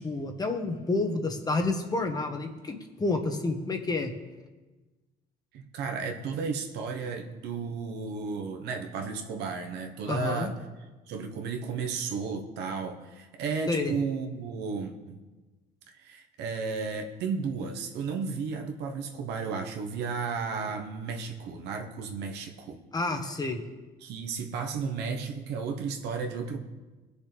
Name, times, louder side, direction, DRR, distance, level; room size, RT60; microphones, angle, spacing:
voice 1, 0.0-4.1 10.1-10.5 13.7-13.9 22.9-23.6, left 3 dB, 25° left, 4 dB, 1.3 m, -29 dB
voice 2, 5.5-10.5 11.1-15.2 15.9-22.8 24.0-26.6, right 5 dB, 85° right, 4 dB, 1.2 m, -33 dB
18.5 x 6.7 x 3.4 m, 1.2 s
cardioid pair, 110°, 17 cm